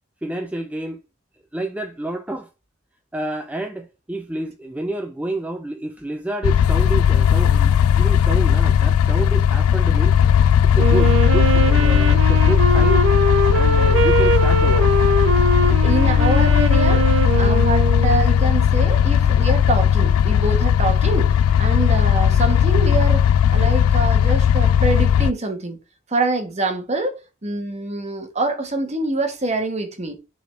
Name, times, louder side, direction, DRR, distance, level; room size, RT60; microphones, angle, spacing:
voice 1, 0.2-1.0 1.5-2.5 3.1-10.2 10.7-13.0 13.5-14.9 15.3-15.4, right 2 dB, 5° right, 0.4 m, -29 dB
sound 1, 6.4-25.3, left 8 dB, 90° left, 0.3 m, -16 dB
Wind instrument woodwind instrument, 10.8-18.5, right 2 dB, 65° right, 0.5 m, -21 dB
voice 2, 15.6-25.8 26.1-30.2, right 2 dB, 30° right, 1.3 m, -25 dB
9.1 x 4.1 x 3.3 m
head